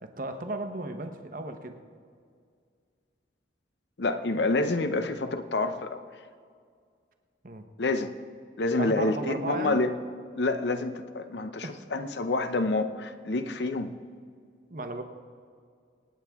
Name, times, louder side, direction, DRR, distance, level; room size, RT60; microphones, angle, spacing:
voice 1, 0.0-1.8 7.4-7.7 8.8-9.8 11.6-11.8 14.7-15.0, right 2 dB, 45° right, 6 dB, 1.0 m, -35 dB
voice 2, 4.0-6.0 7.8-8.1 8.6-10.0 10.4-13.9, left 2 dB, 70° left, 10 dB, 0.7 m, -28 dB
26.5 x 8.9 x 3.6 m, 2.1 s
head